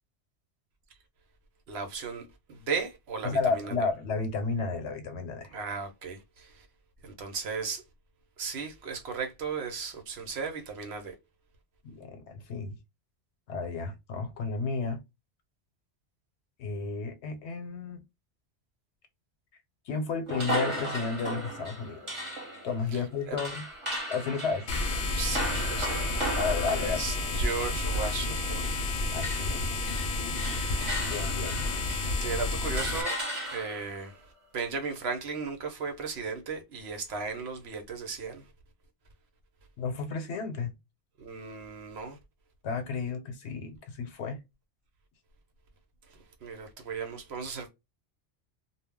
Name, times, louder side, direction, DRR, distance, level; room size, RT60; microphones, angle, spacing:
voice 1, 1.7-3.7 5.5-6.7 7.0-7.8 8.4-11.1 22.9-23.0 23.3-23.4 25.2-26.4 26.6-28.8 32.2-33.2 33.5-34.2 34.5-38.4 41.2-42.2 46.1-47.7, right 5 dB, 70° right, 0.9 m, -36 dB
voice 2, 3.2-5.5 11.8-12.8 13.5-15.0 16.6-18.0 19.9-22.2 22.6-23.7 24.1-24.7 26.4-27.1 29.1-29.8 31.1-31.6 39.8-40.7 42.6-44.4, left 4 dB, 80° left, 1.0 m, -32 dB
sound 1, 20.3-28.9 29.2-32.2 32.8-34.0, right 1 dB, 30° right, 1.0 m, -36 dB
sound 2, 24.7-33.0, left 2 dB, 60° left, 0.7 m, -30 dB
2.3 x 2.0 x 3.4 m
omnidirectional pair, 1.1 m